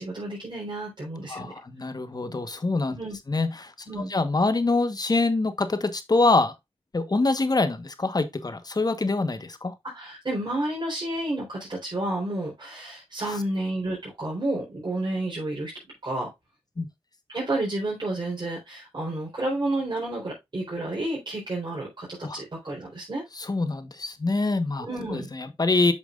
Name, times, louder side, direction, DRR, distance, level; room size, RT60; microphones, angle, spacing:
voice 1, 0.0-1.5 2.9-3.2 3.9-4.1 9.9-15.7 16.0-16.3 17.3-23.2 24.8-25.3, right 1 dB, 45° right, 4.1 m, -30 dB
voice 2, 1.3-3.0 3.3-3.7 4.0-6.5 6.9-9.7 16.8-16.9 22.2-22.4 23.4-25.9, left 3 dB, 40° left, 1.2 m, -25 dB
8.5 x 6.0 x 2.5 m
cardioid pair, 55°, 10 cm